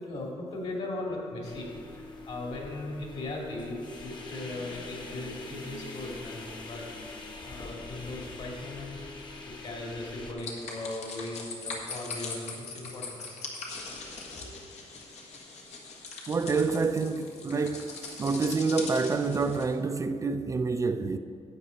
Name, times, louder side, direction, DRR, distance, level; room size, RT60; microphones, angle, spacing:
voice 1, 0.0-7.0 7.4-13.4 14.3-14.5, left 2 dB, 60° left, 2.6 m, -38 dB
sound 1, 1.4-10.3, left 3 dB, 40° left, 1.2 m, -44 dB
sound 2, 10.4-19.6, left 4 dB, 85° left, 1.6 m, -41 dB
voice 2, 16.3-17.9 18.2-21.2, right 4 dB, 30° right, 0.3 m, -27 dB
11.0 x 8.0 x 4.1 m
cardioid pair, 115°, 11 cm